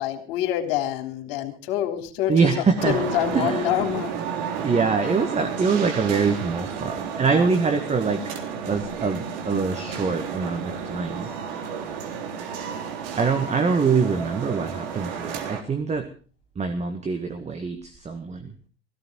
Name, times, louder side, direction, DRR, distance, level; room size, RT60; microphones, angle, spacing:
voice 1, 0.0-2.5 2.8-4.1, left 12 dB, 55° left, 6 dB, 3.5 m, -26 dB
voice 2, 2.3-3.0 3.3-3.6 4.6-8.2 8.7-11.3 13.2-16.1 16.6-18.5, right 5 dB, 20° right, 7 dB, 1.9 m, -24 dB
sound 1, 2.8-15.6, right 6 dB, 55° right, 3.6 m, -32 dB
17.0 x 16.5 x 4.6 m, 0.38 s
figure-of-eight pair, 80°, 32 cm